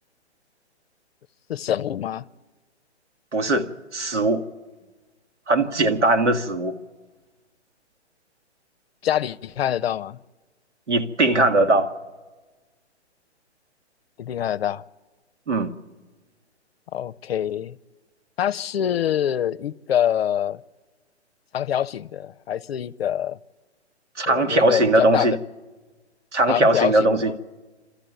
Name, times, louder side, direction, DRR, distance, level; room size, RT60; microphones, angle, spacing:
voice 1, 1.5-2.3 9.0-10.2 14.2-14.9 16.9-17.8 18.4-20.6 21.5-23.4 24.3-25.4 26.5-27.4, left 10 dB, 60° left, 0.6 m, -25 dB
voice 2, 3.3-3.7 3.9-4.4 5.5-6.8 10.9-11.9 15.5-15.7 24.2-25.4 26.3-27.3, right 2 dB, 85° right, 1.9 m, -20 dB
27.5 x 13.0 x 9.0 m
hypercardioid pair, 130°, 34 cm